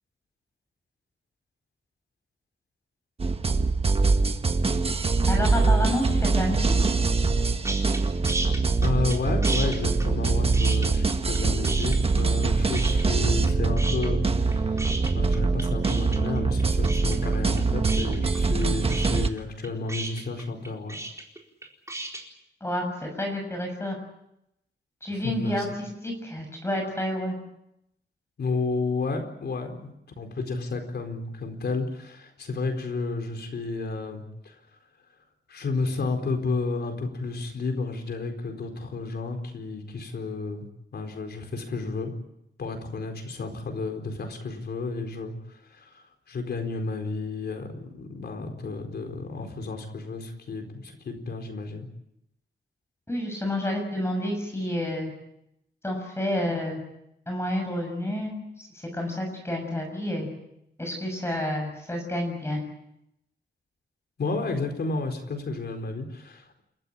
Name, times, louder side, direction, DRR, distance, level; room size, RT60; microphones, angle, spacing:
sound 1, 3.2-19.3, right 3 dB, 35° right, 1.3 m, -23 dB
voice 1, 5.3-6.7 22.6-24.0 25.0-27.4 53.1-55.1 55.8-56.8 57.3-60.3 60.8-62.6, left 1 dB, 15° left, 2 dB, 6.7 m, -29 dB
sound 2, 7.6-8.0 8.3-9.2 9.4-11.4 11.6-12.5 12.7-13.5 13.8-22.2, right 2 dB, 15° right, 4.3 m, -34 dB
voice 2, 8.8-21.0 25.1-25.7 28.4-34.6 35.5-40.7 40.9-42.1 42.6-51.9 64.2-66.6, left 3 dB, 70° left, 5 dB, 4.4 m, -32 dB
29.0 x 14.5 x 10.0 m, 0.81 s
wide cardioid pair, 150°, 18 cm